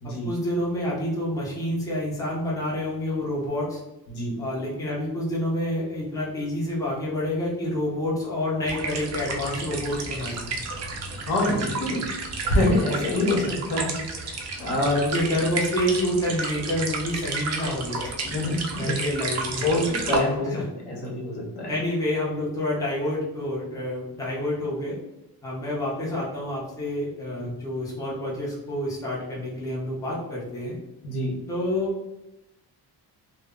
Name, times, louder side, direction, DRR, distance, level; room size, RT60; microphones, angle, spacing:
voice 1, 0.0-3.8 4.4-10.5 14.6-18.1 18.8-19.7 20.4-20.7 21.7-25.0 25.4-30.8 31.5-32.1, left 1 dB, 10° left, -5 dB, 0.5 m, -28 dB
voice 2, 4.1-4.4 11.3-12.2 12.4-15.0 18.2-19.0 19.6-21.7 31.0-31.4, left 1 dB, 80° left, -1 dB, 0.9 m, -26 dB
sound 1, 8.7-20.2, right 3 dB, 45° right, 0.4 m, -32 dB
2.0 x 2.0 x 3.5 m, 0.95 s
cardioid pair, 170°, 39 cm